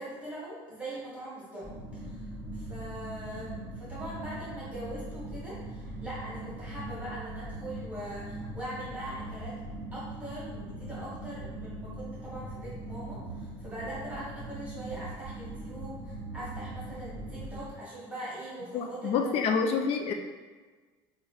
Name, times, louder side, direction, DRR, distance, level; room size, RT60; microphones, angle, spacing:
voice 1, 0.0-9.6 9.9-19.4, right 1 dB, 10° right, -8 dB, 1.2 m, -42 dB
sound 1, 1.6-17.7, right 1 dB, 10° left, 0.9 m, -41 dB
voice 2, 18.7-20.1, left 5 dB, 50° left, 5 dB, 0.3 m, -27 dB
3.0 x 2.5 x 2.3 m, 1.4 s
supercardioid pair, 105°, 12 cm